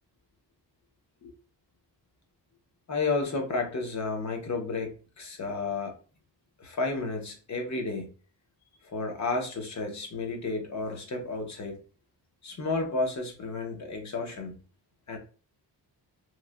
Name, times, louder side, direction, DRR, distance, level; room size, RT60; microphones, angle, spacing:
voice 1, 2.9-5.9 6.6-8.1 8.8-11.8 12.4-14.5 15.1-15.2, left 3 dB, 40° left, 3 dB, 0.7 m, -32 dB
3.0 x 2.5 x 2.3 m, 0.38 s
wide cardioid pair, 170°, 42 cm